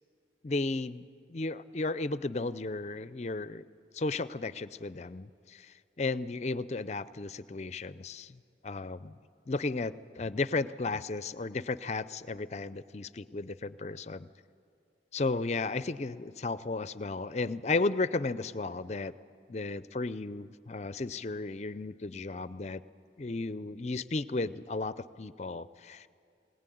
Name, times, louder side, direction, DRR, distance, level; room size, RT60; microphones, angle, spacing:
voice 1, 0.4-1.0 1.3-3.6 3.9-8.4 8.6-9.2 9.5-14.3 15.1-19.1 19.5-22.8 23.2-26.1, left 3 dB, 40° left, 15 dB, 0.5 m, -34 dB
21.0 x 19.0 x 9.2 m, 2.3 s
head